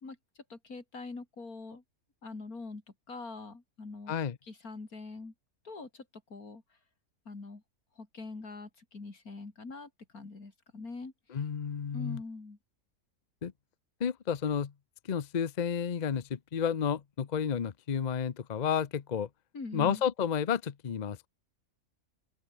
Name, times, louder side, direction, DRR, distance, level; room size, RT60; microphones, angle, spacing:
voice 1, 0.5-1.8 2.2-2.8 3.1-4.1 4.4-5.3 5.6-6.6 7.3-7.6 8.0-11.1 11.9-12.6 19.5-20.0, left 3 dB, 90° left, 4.1 m, -43 dB
voice 2, 11.3-12.2 13.4-13.5 14.0-14.7 15.1-19.3 19.7-21.3, left 7 dB, 40° left, 0.8 m, -31 dB
open air
omnidirectional pair, 1.5 m